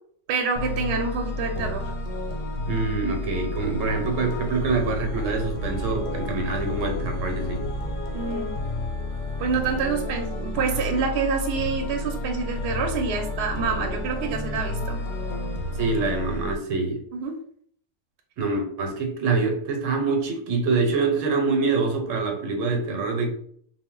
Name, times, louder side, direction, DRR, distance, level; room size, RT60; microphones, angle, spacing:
voice 1, 0.3-1.8 8.1-8.5 9.4-15.0 17.1-17.3, right 5 dB, 65° right, 3 dB, 0.8 m, -27 dB
sound 1, 0.6-16.6, left 2 dB, 90° left, 0.9 m, -30 dB
voice 2, 2.7-7.7 15.8-17.0 18.4-23.3, right 4 dB, 90° right, 3 dB, 1.0 m, -25 dB
2.1 x 2.0 x 3.6 m, 0.62 s
omnidirectional pair, 1.3 m